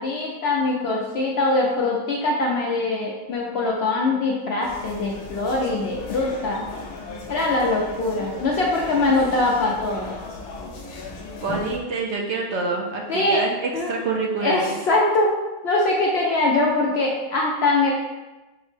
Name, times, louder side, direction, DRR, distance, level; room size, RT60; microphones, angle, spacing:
voice 1, 0.0-6.7 7.3-10.2 13.1-13.4 13.7-13.9 14.4-15.3 15.6-17.9, left 2 dB, 70° left, -2 dB, 0.6 m, -22 dB
sound 1, 4.6-11.8, left 3 dB, 85° left, 1.1 m, -36 dB
voice 2, 11.4-14.7, right 3 dB, 65° right, 0 dB, 0.7 m, -26 dB
5.7 x 2.0 x 3.1 m, 1.1 s
omnidirectional pair, 1.5 m